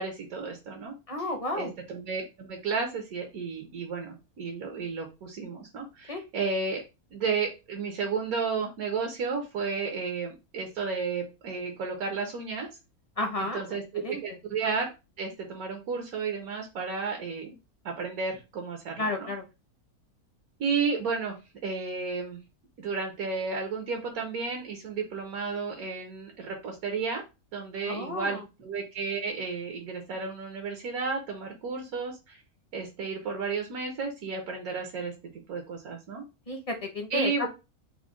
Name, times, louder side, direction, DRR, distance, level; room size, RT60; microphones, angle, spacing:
voice 1, 0.0-0.9 1.5-6.8 7.1-12.7 13.4-14.9 15.2-17.5 17.8-19.3 20.6-21.4 21.6-22.4 22.8-27.2 27.5-32.4 32.7-35.1 35.5-36.2 37.1-37.5, right 4 dB, 75° right, 2 dB, 1.3 m, -32 dB
voice 2, 1.1-1.7 6.1-6.2 13.2-14.2 19.0-19.4 27.8-28.4 36.5-37.5, left 2 dB, 35° left, 3 dB, 0.6 m, -32 dB
4.9 x 2.1 x 3.6 m, 0.27 s
omnidirectional pair, 1.6 m